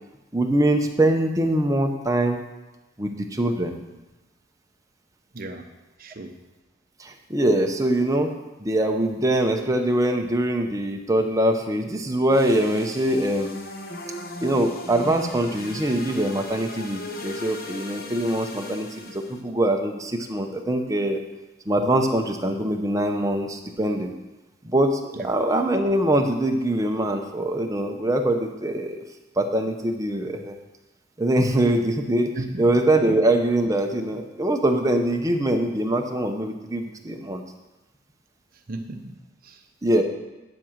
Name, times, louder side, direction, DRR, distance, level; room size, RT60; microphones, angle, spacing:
voice 1, 0.3-2.4 3.0-3.7 7.0-8.3 8.6-13.6 14.4-21.2 21.7-24.1 24.6-29.0 29.4-30.6 31.2-32.3 32.6-37.4 39.8-40.0, right 1 dB, 15° right, 3 dB, 0.8 m, -23 dB
voice 2, 5.3-5.7 6.0-6.4 25.1-25.3 32.4-32.7 38.7-39.6, right 2 dB, 45° right, 5 dB, 0.9 m, -35 dB
sound 1, 12.3-19.4, left 1 dB, 45° left, 1.0 m, -37 dB
10.5 x 5.0 x 7.3 m, 1.1 s
head